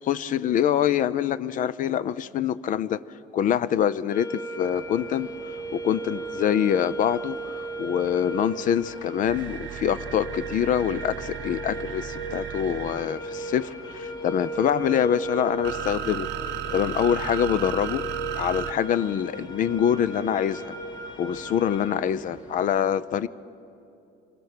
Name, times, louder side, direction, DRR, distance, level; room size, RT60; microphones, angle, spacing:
voice 1, 0.0-3.0 3.3-16.3 16.7-18.0 18.3-20.8 21.2-23.3, left 9 dB, 40° left, 18 dB, 0.5 m, -25 dB
sound 1, 4.1-21.9, right 2 dB, 65° left, 2.2 m, -36 dB
sound 2, 4.7-22.6, equal, 20° left, 3.2 m, -48 dB
sound 3, 9.3-13.1 14.5-18.7, right 13 dB, 60° right, 0.7 m, -35 dB
26.5 x 21.5 x 6.7 m, 2.7 s
cardioid pair, 160°, 21 cm